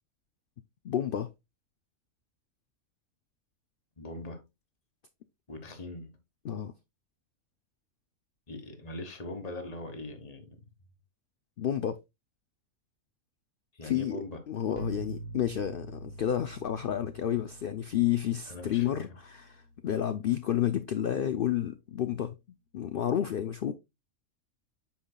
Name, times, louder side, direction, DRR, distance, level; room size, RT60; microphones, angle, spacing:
voice 1, 0.8-1.3 6.4-6.7 11.6-12.0 13.8-14.2 14.5-22.4 22.7-23.7, left 10 dB, 60° left, 0.6 m, -30 dB
voice 2, 4.0-4.4 5.5-6.1 8.5-10.6 13.7-14.4 18.5-19.2, left 1 dB, 30° left, 1.4 m, -41 dB
sound 1, 14.7-20.5, right 2 dB, 80° right, 1.3 m, -46 dB
8.6 x 5.7 x 2.2 m
omnidirectional pair, 1.4 m